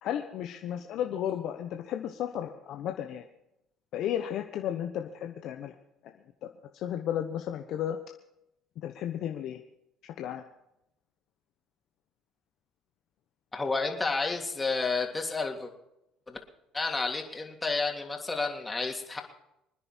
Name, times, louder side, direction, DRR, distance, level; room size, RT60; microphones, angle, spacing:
voice 1, 0.0-3.3 3.9-5.7 6.4-6.5 6.7-8.0 8.8-9.6 10.2-10.4, left 10 dB, 65° left, 5 dB, 1.1 m, -33 dB
voice 2, 13.5-15.7 16.3-16.4 16.7-19.2, left 3 dB, 20° left, 2 dB, 3.1 m, -31 dB
26.0 x 10.0 x 4.5 m, 0.83 s
supercardioid pair, 75°, 0 cm